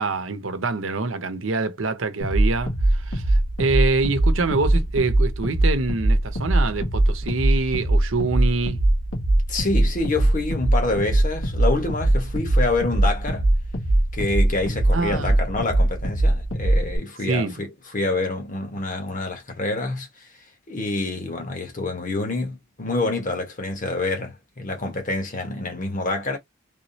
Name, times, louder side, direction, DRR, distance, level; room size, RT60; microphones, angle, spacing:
voice 1, 0.0-8.8 14.9-15.4 17.3-17.5, right 3 dB, 90° right, 0.8 m, -25 dB
sound 1, 2.2-17.0, right 1 dB, 80° left, 1.7 m, -21 dB
voice 2, 9.5-13.5 14.1-20.3 20.7-26.4, left 2 dB, 45° left, 1.2 m, -27 dB
3.6 x 3.1 x 2.8 m
head